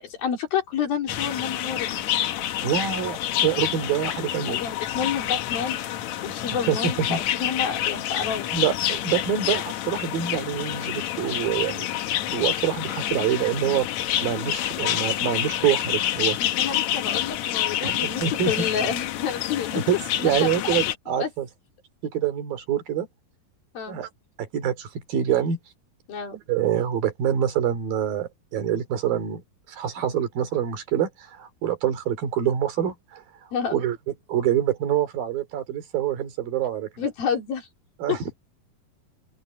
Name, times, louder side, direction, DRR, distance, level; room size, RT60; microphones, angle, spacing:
voice 1, 0.0-2.0 4.5-5.8 6.2-8.5 16.4-19.8 20.2-20.8 21.2-21.3 23.7-24.0 26.1-26.4 33.5-33.8 37.0-37.7 38.1-38.2, left 7 dB, 85° left, 5.6 m, -29 dB
sound 1, 1.1-21.0, left 12 dB, 70° left, 1.9 m, -28 dB
voice 2, 2.6-4.6 6.7-7.2 8.5-12.0 12.3-13.9 14.2-16.5 17.8-18.7 19.7-21.5 22.0-23.1 23.9-24.1 24.4-25.6 26.5-29.4 29.7-33.2 33.7-34.0 34.3-36.9 38.0-38.2, right 9 dB, 80° right, 4.5 m, -26 dB
open air
omnidirectional pair, 4.1 m